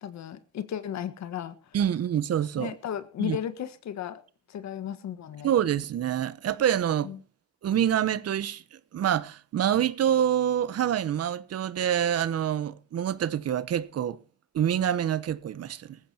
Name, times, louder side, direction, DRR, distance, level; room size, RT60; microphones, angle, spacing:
voice 1, 0.0-1.5 2.6-4.2 4.5-5.5 7.0-7.2, left 10 dB, 70° left, 1.5 m, -34 dB
voice 2, 1.7-2.7 3.2-3.4 5.4-7.1 7.6-14.2 14.5-16.0, right 10 dB, 55° right, 0.9 m, -26 dB
19.0 x 14.5 x 2.9 m
cardioid pair, 90°, 29 cm